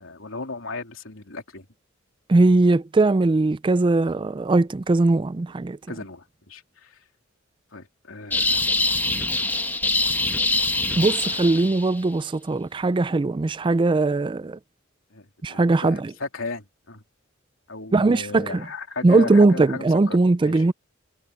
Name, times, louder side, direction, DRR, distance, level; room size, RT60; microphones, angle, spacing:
voice 1, 0.0-1.7 5.9-7.0 7.7-9.1 9.9-11.0 15.1-17.0 17.7-20.2 20.4-20.6, left 3 dB, 80° left, 3.3 m, -36 dB
voice 2, 2.3-5.8 11.0-14.6 15.4-16.1 17.9-18.7 19.0-20.7, right 2 dB, 25° right, 0.4 m, -20 dB
sound 1, 8.3-12.0, left 2 dB, 10° left, 1.2 m, -24 dB
head